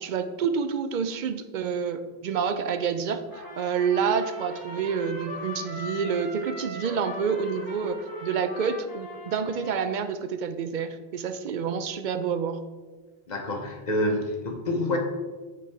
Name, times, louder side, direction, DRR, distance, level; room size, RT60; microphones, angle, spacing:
voice 1, 0.0-12.6, right 6 dB, 60° right, 9 dB, 0.6 m, -28 dB
Trumpet, 3.3-10.0, left 1 dB, 20° left, 1.2 m, -40 dB
voice 2, 13.3-15.0, left 1 dB, 45° left, 2 dB, 1.1 m, -27 dB
9.9 x 4.2 x 3.4 m, 1.3 s
omnidirectional pair, 1.1 m